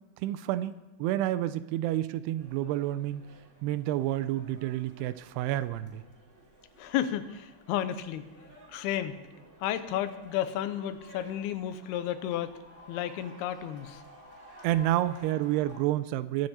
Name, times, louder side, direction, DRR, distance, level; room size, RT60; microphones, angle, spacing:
voice 1, 0.2-0.7 1.0-3.2 3.6-6.0 14.6-16.5, right 13 dB, 90° right, 12 dB, 2.6 m, -29 dB
sound 1, 2.4-15.8, equal, 20° right, 2.4 m, -54 dB
voice 2, 6.8-8.3 8.7-9.2 9.6-12.6 12.9-14.0, left 11 dB, 80° left, 11 dB, 2.7 m, -32 dB
22.5 x 7.9 x 4.3 m, 1.1 s
omnidirectional pair, 4.6 m